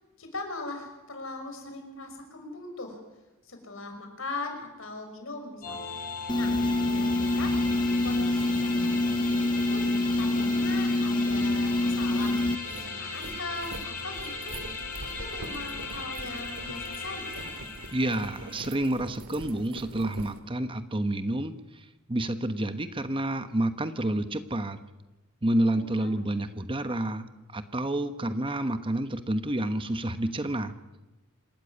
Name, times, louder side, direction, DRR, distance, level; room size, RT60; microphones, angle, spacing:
voice 1, 0.2-3.0 3.4-6.0 6.3-6.5 6.9-7.5 8.0-14.5 15.2-17.5 25.6-26.1 26.4-26.5, left 2 dB, 65° left, 5 dB, 5.9 m, -40 dB
sound 1, 5.6-18.7, left 4 dB, 40° left, 6.4 m, -38 dB
sound 2, 6.3-12.6, left 2 dB, 20° left, 1.1 m, -26 dB
sound 3, 12.1-20.4, right 2 dB, 85° right, 2.4 m, -43 dB
voice 2, 17.9-24.8 25.4-30.7, right 1 dB, 25° right, 10 dB, 1.1 m, -29 dB
27.0 x 13.5 x 9.8 m, 1.1 s
head